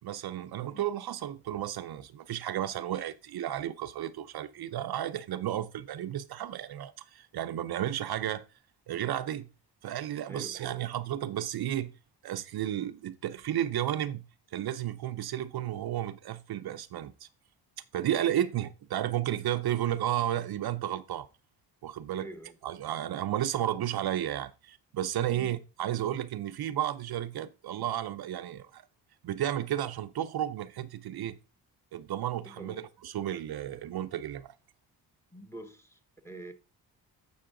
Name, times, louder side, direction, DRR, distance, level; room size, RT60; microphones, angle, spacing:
voice 1, 0.0-8.4 8.9-9.5 9.8-11.9 12.2-14.2 14.5-17.3 17.9-21.3 21.8-22.3 22.6-28.8 29.2-31.4 31.9-32.8 33.0-34.5, right 11 dB, 60° right, 0.6 m, -33 dB
voice 2, 10.3-10.7 18.3-18.5 22.2-22.6 32.4-32.8 35.3-36.5, right 1 dB, 5° left, 1.1 m, -46 dB
7.7 x 5.5 x 3.7 m
cardioid pair, 85°, 42 cm